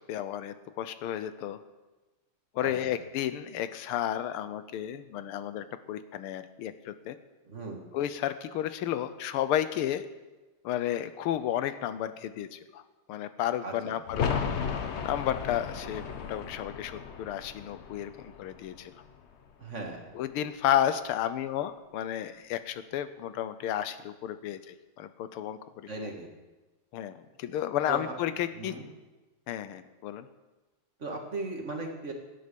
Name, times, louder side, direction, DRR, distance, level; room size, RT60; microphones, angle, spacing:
voice 1, 0.1-1.6 2.5-7.2 7.9-10.0 10.6-12.8 13.1-14.3 15.0-19.0 20.1-25.9 26.9-28.7 29.5-30.3, left 11 dB, 90° left, 12 dB, 1.7 m, -32 dB
voice 2, 2.6-2.9 7.5-7.8 13.6-13.9 19.6-20.0 25.9-26.3 27.9-28.1 28.6-28.9 31.0-32.1, right 2 dB, 35° right, 2 dB, 1.9 m, -37 dB
sound 1, 14.1-19.6 19.9-20.0, left 6 dB, 70° left, 0.6 m, -35 dB
17.5 x 9.8 x 5.2 m, 1.2 s
omnidirectional pair, 2.3 m